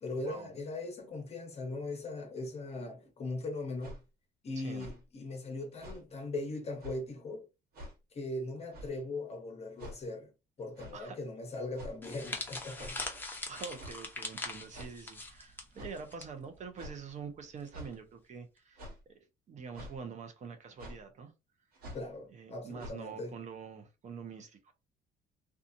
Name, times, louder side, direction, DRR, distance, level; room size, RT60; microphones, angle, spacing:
voice 1, 0.0-4.0 4.4-7.5 8.1-10.3 10.6-13.1 21.9-23.4, left 2 dB, 40° left, 0.9 m, -39 dB
sound 1, 3.8-4.0 4.7-5.0 5.8-6.0 6.8-7.0 7.7-8.0 8.7-9.0 9.8-10.0 10.7-11.0 11.7-12.1 12.7-13.0 13.8-14.0 14.7-14.9 15.7-16.0 16.8-17.0 17.7-17.9 18.8-19.0 19.7-20.0 20.8-21.0 21.7-22.1 22.8-22.9, equal, 65° right, 1.3 m, -46 dB
voice 2, 4.6-4.9 10.9-11.2 13.1-18.8 19.1-19.2 19.5-21.3 22.3-24.7, right 5 dB, 45° right, 0.7 m, -45 dB
sound 2, 12.0-16.3 16.5-16.8 17.7-17.9, left 2 dB, 10° left, 0.7 m, -41 dB
2.7 x 2.4 x 2.5 m
cardioid pair, 110°, 17 cm